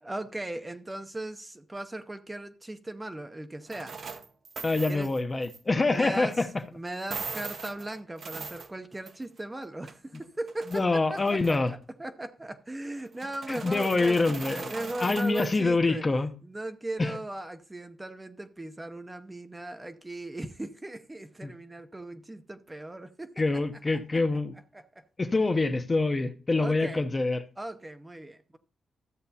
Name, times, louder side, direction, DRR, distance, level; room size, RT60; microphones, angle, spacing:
voice 1, 0.0-4.0 4.9-5.1 5.9-6.5 6.7-16.0 16.4-23.3 24.7-25.0 26.6-27.0 27.6-28.6, right 1 dB, 15° right, 0.6 m, -38 dB
sound 1, 3.7-5.6 6.3-6.4 6.9-9.4 9.6-10.9 11.2-11.7 13.0-15.6, right 5 dB, 45° right, 0.7 m, -40 dB
voice 2, 4.6-6.5 10.7-11.7 13.5-16.3 17.0-17.2 21.4-21.5 23.4-24.6 25.2-27.4, left 3 dB, 25° left, 0.7 m, -26 dB
13.5 x 7.9 x 2.8 m
wide cardioid pair, 135°, 0 cm